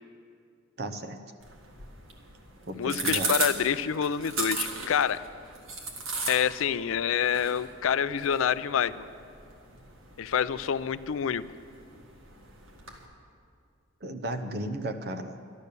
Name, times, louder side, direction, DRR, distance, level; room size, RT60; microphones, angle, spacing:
voice 1, 0.8-1.2 2.7-3.3 14.0-15.4, right 1 dB, 50° right, 6 dB, 0.8 m, -34 dB
sound 1, 1.4-13.0, right 3 dB, 85° right, 1.8 m, -37 dB
voice 2, 2.8-5.2 6.3-9.1 10.2-11.4, left 8 dB, 80° left, 15 dB, 0.4 m, -27 dB
12.0 x 12.0 x 6.8 m, 2.3 s
head